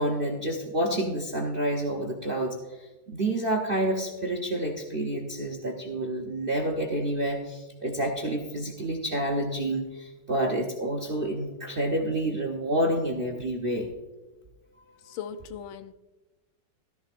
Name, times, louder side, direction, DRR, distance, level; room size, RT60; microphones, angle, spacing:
voice 1, 0.0-13.9, right 1 dB, 50° right, 2 dB, 0.6 m, -29 dB
voice 2, 15.0-15.9, left 8 dB, 90° left, 12 dB, 1.4 m, -38 dB
14.0 x 13.0 x 2.5 m, 1.1 s
omnidirectional pair, 2.1 m